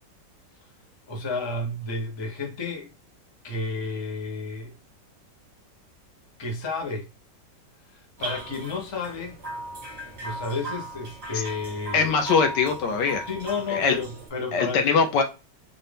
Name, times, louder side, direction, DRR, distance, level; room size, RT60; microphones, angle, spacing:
voice 1, 1.1-2.9 3.4-4.7 6.4-7.1 7.9-9.4 10.2-12.1 13.3-15.1, left 3 dB, 30° left, 0.5 m, -31 dB
sound 1, 8.2-14.3, right 2 dB, 35° right, 1.6 m, -37 dB
voice 2, 11.9-13.2 13.7-14.0 14.5-15.2, left 5 dB, 75° left, 1.3 m, -22 dB
4.2 x 2.4 x 3.3 m
omnidirectional pair, 2.0 m